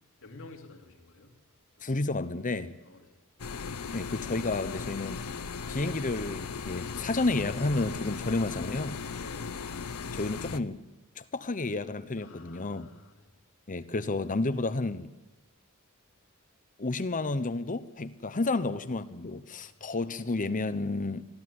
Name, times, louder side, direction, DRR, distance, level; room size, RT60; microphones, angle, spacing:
voice 1, 0.2-1.3 1.8-1.9 2.9-3.2 9.0-9.6 12.2-13.3 18.3-18.7 19.4-20.0, left 2 dB, 65° left, 3.0 m, -51 dB
voice 2, 1.8-2.7 3.9-5.2 5.7-9.0 10.1-10.8 11.2-12.9 13.7-15.1 16.8-21.2, left 2 dB, 35° left, 0.9 m, -31 dB
sound 1, 3.4-10.6, left 5 dB, 85° left, 0.8 m, -37 dB
22.5 x 14.0 x 9.7 m
head